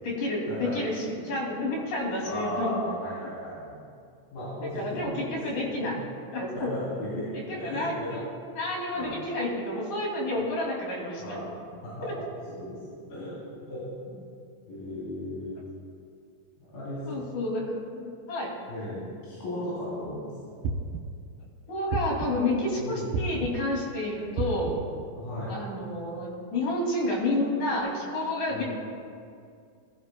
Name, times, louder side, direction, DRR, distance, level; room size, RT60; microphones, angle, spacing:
voice 1, 0.0-2.8 4.7-6.0 6.3-6.7 7.3-8.3 8.6-11.4 17.1-18.5 21.7-24.8 25.5-28.6, left 1 dB, 65° left, -3 dB, 4.1 m, -30 dB
voice 2, 2.3-3.8 4.3-6.1 6.5-8.1 8.9-9.2 11.2-11.5 11.8-12.8 13.1-13.4 13.7-14.2 14.7-15.5 16.6-17.2 18.7-20.6 22.7-23.1 25.2-25.5 28.5-28.6, left 1 dB, 85° left, -10 dB, 5.3 m, -36 dB
sound 1, 20.6-21.3 21.9-22.6 23.1-23.8 24.4-25.0, right 3 dB, 90° right, 2.5 m, -32 dB
21.5 x 15.5 x 2.3 m, 2.3 s
omnidirectional pair, 4.0 m